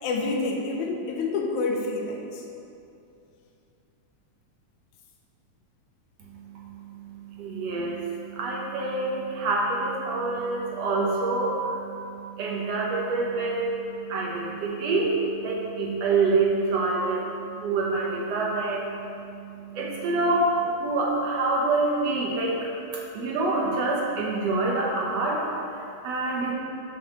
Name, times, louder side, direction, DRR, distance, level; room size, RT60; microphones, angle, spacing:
voice 1, 0.0-2.4, left 3 dB, 85° left, 1 dB, 2.2 m, -28 dB
voice 2, 6.3-22.7 22.9-26.5, right 3 dB, 65° right, -3 dB, 2.0 m, -27 dB
6.2 x 5.5 x 6.3 m, 2.7 s
omnidirectional pair, 3.3 m